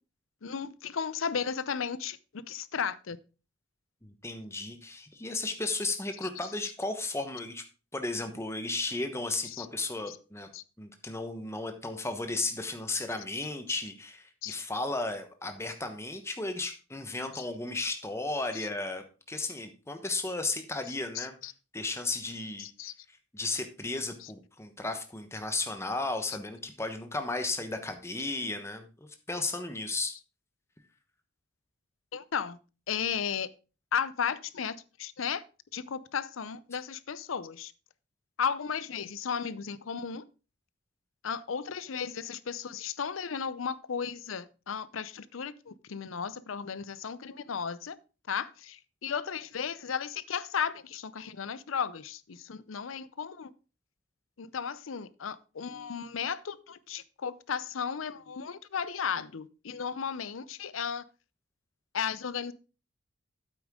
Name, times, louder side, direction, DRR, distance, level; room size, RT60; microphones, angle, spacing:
voice 1, 0.4-3.2 6.2-6.3 9.5-9.7 10.1-10.2 10.5-10.6 14.4-14.5 17.4-17.5 21.1-21.5 22.6-22.9 32.1-32.6 32.9-33.5 33.9-35.4 35.7-37.7 38.4-40.2 41.2-48.0 48.3-53.5 54.4-61.0 61.9-62.5, left 7 dB, 85° left, 0.6 m, -35 dB
voice 2, 4.0-7.6 7.9-10.5 10.8-21.4 21.7-22.7 23.1-30.2, left 2 dB, 15° left, 1.1 m, -34 dB
8.8 x 8.4 x 3.7 m
head